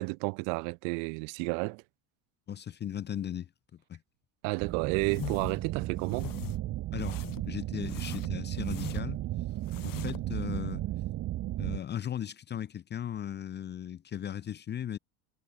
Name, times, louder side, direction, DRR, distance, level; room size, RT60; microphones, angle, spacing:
voice 1, 0.0-1.8 4.4-6.3, right 40 dB or more, 80° right, 1.0 m, -31 dB
voice 2, 2.5-3.5 3.9-4.0 6.9-9.2 9.8-10.8 11.6-15.0, left 10 dB, 25° left, 0.4 m, -37 dB
sound 1, 4.6-11.8, right 15 dB, 35° right, 0.5 m, -35 dB
sound 2, 5.0-5.6 6.0-6.6 7.0-7.5 7.9-9.2 9.6-10.3, left 14 dB, 45° left, 1.6 m, -43 dB
cardioid pair, 145°, 49 cm